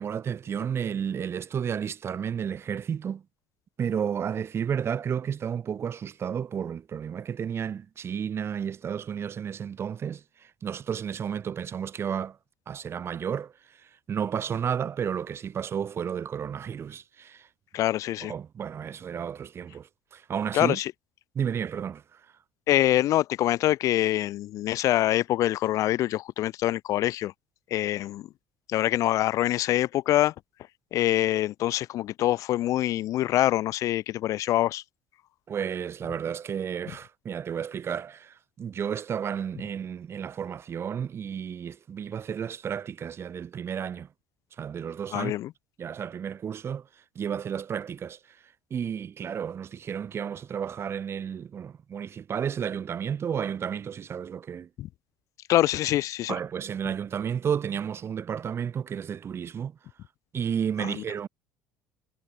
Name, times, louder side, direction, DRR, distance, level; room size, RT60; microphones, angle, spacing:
voice 1, 0.0-3.2 3.8-12.4 12.7-13.5 14.1-17.5 18.3-20.8 21.4-22.2 35.5-44.1 44.6-45.3 45.8-46.9 47.2-48.4 48.7-54.7 56.3-59.7 60.3-61.3, right 8 dB, 40° right, 3.7 m, -32 dB
voice 2, 17.7-18.3 20.5-20.9 22.7-27.3 27.7-28.3 28.7-30.3 30.9-34.8 45.1-45.5 54.8-54.9 55.5-56.4 60.8-60.9, left 14 dB, 55° left, 1.6 m, -25 dB
figure-of-eight pair, 60°, 7 cm